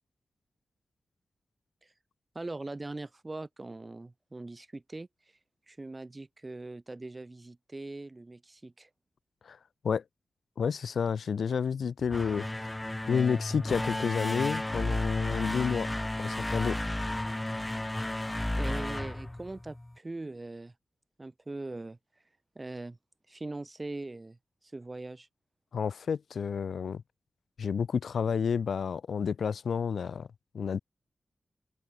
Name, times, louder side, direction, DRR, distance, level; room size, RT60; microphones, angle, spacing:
voice 1, 2.4-5.1 5.7-8.9 18.6-20.7 21.2-22.0 22.6-23.0 23.3-24.4 24.7-25.3, right 2 dB, 25° right, 7.0 m, -41 dB
voice 2, 10.6-12.5 13.1-15.9 16.2-16.7 25.7-27.0 27.6-30.3 30.5-30.8, left 6 dB, 80° left, 0.6 m, -30 dB
sound 1, 12.0-20.0, left 1 dB, 15° left, 1.5 m, -33 dB
wide cardioid pair, 85°, 0 cm